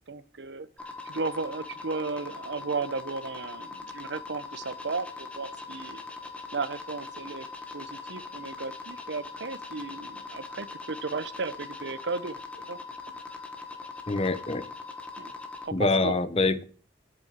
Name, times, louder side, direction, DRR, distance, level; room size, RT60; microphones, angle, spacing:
voice 1, 0.1-6.0 6.5-7.5 7.7-12.4 12.7-12.8 13.3-13.5 15.2-15.3 15.6-16.1, right 4 dB, 75° right, 0.8 m, -35 dB
sound 1, 0.8-15.7, left 4 dB, 5° left, 1.3 m, -41 dB
voice 2, 14.1-14.7 15.7-16.6, left 3 dB, 35° left, 0.7 m, -25 dB
8.3 x 7.7 x 7.4 m
head